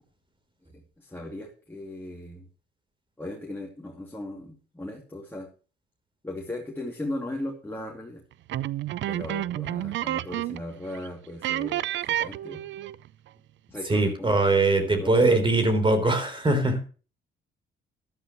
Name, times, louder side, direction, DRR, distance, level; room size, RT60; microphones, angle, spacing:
voice 1, 0.6-2.5 3.2-5.5 6.2-8.2 9.1-12.6 13.7-14.5 14.8-15.7, left 1 dB, 10° left, -1 dB, 2.6 m, -37 dB
sound 1, 8.5-10.7 10.9-11.1 11.4-13.1, right 13 dB, 70° right, 0.5 m, -30 dB
voice 2, 13.9-16.8, right 2 dB, 25° right, 8 dB, 3.5 m, -22 dB
13.0 x 11.5 x 3.0 m, 0.36 s
cardioid pair, 90°, 20 cm